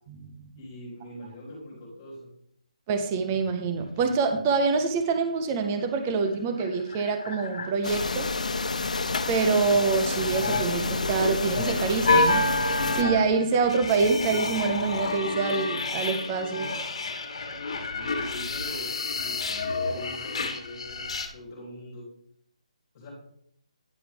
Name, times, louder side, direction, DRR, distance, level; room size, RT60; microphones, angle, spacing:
voice 1, 0.5-2.3 17.8-22.0 22.9-23.1, left 1 dB, 20° left, -7 dB, 3.1 m, -42 dB
voice 2, 2.9-8.3 9.3-12.6 12.9-16.7, right 4 dB, 15° right, 6 dB, 0.5 m, -26 dB
sound 1, 5.1-5.5 5.8-5.9 6.2-8.0 10.0-21.3, left 3 dB, 55° left, 1.5 m, -29 dB
sound 2, 7.8-13.0, left 3 dB, 85° left, 0.9 m, -29 dB
10.5 x 4.6 x 5.1 m, 0.67 s
hypercardioid pair, 175°, 4 cm